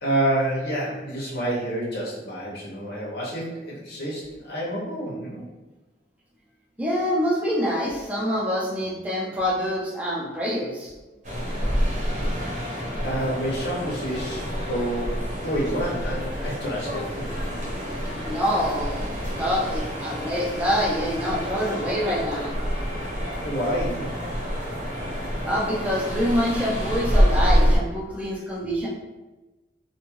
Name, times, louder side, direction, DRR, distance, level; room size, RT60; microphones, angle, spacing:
voice 1, 0.0-5.4 12.1-12.8 13.0-17.3 23.1-24.2, right 1 dB, 70° left, -6 dB, 0.7 m, -29 dB
voice 2, 6.8-10.9 18.1-19.1 19.4-22.5 25.4-28.9, equal, 10° right, -5 dB, 0.5 m, -26 dB
sound 1, 11.2-27.8, equal, 40° right, 0.8 m, -27 dB
2.6 x 2.3 x 3.0 m, 1.1 s
head